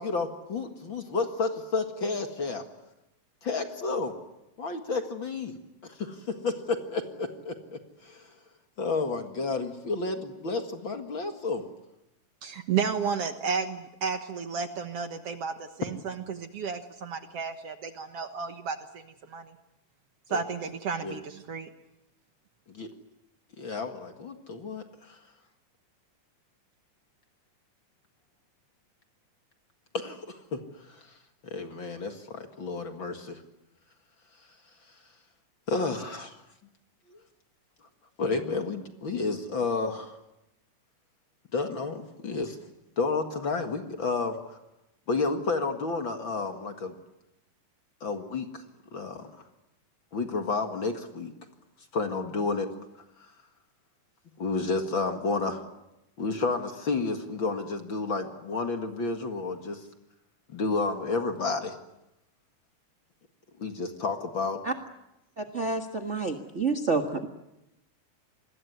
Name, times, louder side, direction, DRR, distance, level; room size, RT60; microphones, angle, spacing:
voice 1, 0.0-2.7 3.4-4.2 4.6-5.5 5.8-8.3 8.8-11.7 20.3-20.4 21.0-21.2 22.7-22.9 23.6-25.2 29.9-31.1 31.5-33.4 35.7-36.4 37.1-37.2 38.2-40.2 41.5-42.6 43.0-44.6 45.1-47.0 48.0-48.6 48.9-49.3 50.1-51.3 51.9-52.7 54.4-55.6 56.2-59.9 60.5-61.8 63.6-64.6, left 3 dB, 45° left, 5 dB, 2.2 m, -31 dB
voice 2, 12.4-19.5 20.3-21.7, right 6 dB, 55° right, 8 dB, 2.1 m, -32 dB
voice 3, 65.4-67.3, right 4 dB, 35° right, 6 dB, 1.1 m, -29 dB
27.5 x 21.0 x 9.6 m, 0.91 s
omnidirectional pair, 3.7 m